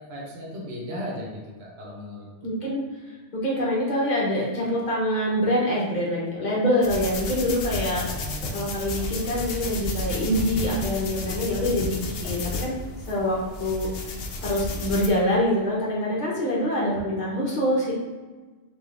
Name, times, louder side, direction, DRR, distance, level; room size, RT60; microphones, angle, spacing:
voice 1, 0.0-2.3 7.9-8.7, equal, 60° right, -4 dB, 1.1 m, -36 dB
voice 2, 2.4-2.8 3.3-8.0 8.5-12.8 13.1-13.9 14.4-17.9, equal, 40° left, -4 dB, 1.1 m, -25 dB
sound 1, 6.8-15.1, left 3 dB, 60° left, 0.7 m, -32 dB
3.9 x 2.4 x 3.5 m, 1.3 s
omnidirectional pair, 1.3 m